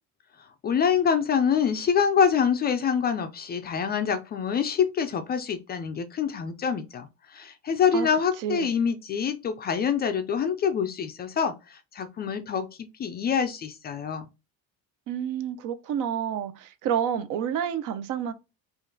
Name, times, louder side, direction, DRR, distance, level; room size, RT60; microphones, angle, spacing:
voice 1, 0.6-7.1 7.3-14.3, left 7 dB, 30° left, 0.4 m, -26 dB
voice 2, 8.4-8.7 15.1-18.3, right 9 dB, 60° right, 0.7 m, -29 dB
5.2 x 2.5 x 3.8 m
cardioid pair, 160°, 36 cm